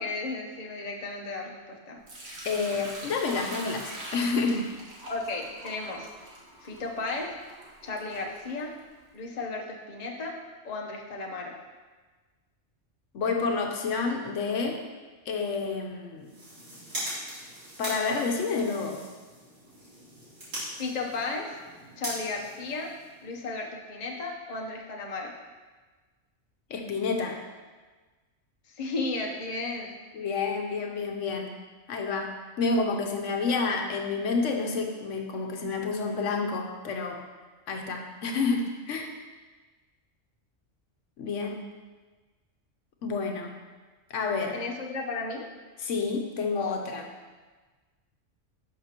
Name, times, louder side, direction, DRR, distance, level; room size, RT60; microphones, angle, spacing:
voice 1, 0.0-2.0 5.1-6.1 6.6-7.3 7.8-8.7 9.1-10.4 10.6-11.5 20.8-21.6 22.0-22.9 23.2-25.3 28.7-29.9 44.5-45.5, left 3 dB, 35° left, 0 dB, 0.9 m, -34 dB
Sink (filling or washing) / Liquid, 2.1-9.0, right 1 dB, 60° right, 1.5 m, -43 dB
voice 2, 2.4-4.7 13.1-14.8 15.3-16.3 17.8-19.0 26.7-27.4 30.1-31.5 31.9-37.2 37.7-39.1 41.2-41.7 43.0-43.5 44.1-44.5 45.8-47.1, left 4 dB, 80° left, 2 dB, 1.1 m, -29 dB
sound 1, 16.2-23.4, right 1 dB, 85° right, 3.3 m, -40 dB
11.0 x 5.8 x 2.9 m, 1.3 s
omnidirectional pair, 1.3 m